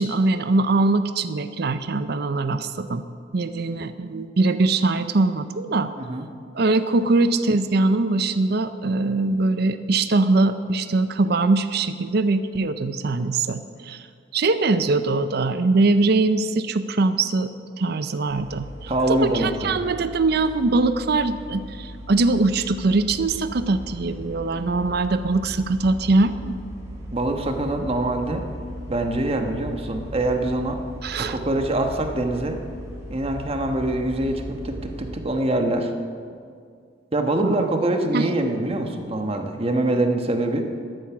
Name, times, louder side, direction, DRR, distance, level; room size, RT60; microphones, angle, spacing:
voice 1, 0.0-3.0 3.3-5.9 6.5-14.0 14.3-17.5 17.8-26.5 31.0-31.4 37.4-37.6 38.1-38.3, right 3 dB, 60° right, 11 dB, 0.5 m, -22 dB
sound 1, 18.3-35.2, equal, 15° right, 3.3 m, -38 dB
voice 2, 18.9-19.7 27.1-28.5 28.9-30.8 31.2-32.6 33.1-35.9 37.1-40.6, right 1 dB, 35° right, 5 dB, 1.2 m, -24 dB
13.0 x 11.5 x 6.0 m, 2.2 s
head